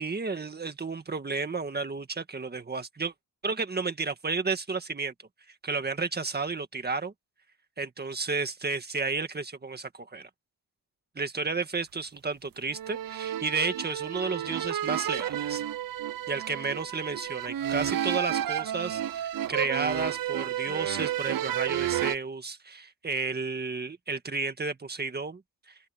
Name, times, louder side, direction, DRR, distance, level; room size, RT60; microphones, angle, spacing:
voice 1, 0.0-3.1 3.4-5.1 5.6-7.1 7.8-10.3 11.2-15.6 16.3-25.4 25.7-25.8, right 4 dB, 25° right, 1.8 m, -32 dB
sound 1, 12.7-22.2, right 11 dB, 55° right, 0.8 m, -31 dB
open air
wide cardioid pair, 165°, 41 cm